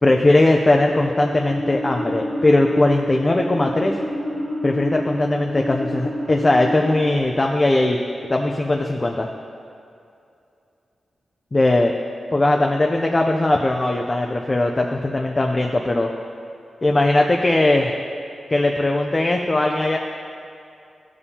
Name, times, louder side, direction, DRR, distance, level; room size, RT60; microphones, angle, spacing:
voice 1, 0.0-4.0 4.6-8.0 8.3-9.3 11.5-11.9 12.3-16.1 16.8-17.9 18.5-20.0, left 2 dB, 20° left, 2 dB, 0.4 m, -19 dB
sound 1, 0.9-7.2, equal, 10° right, 1.4 m, -28 dB
15.0 x 7.0 x 2.8 m, 2.5 s
wide cardioid pair, 160°, 0 cm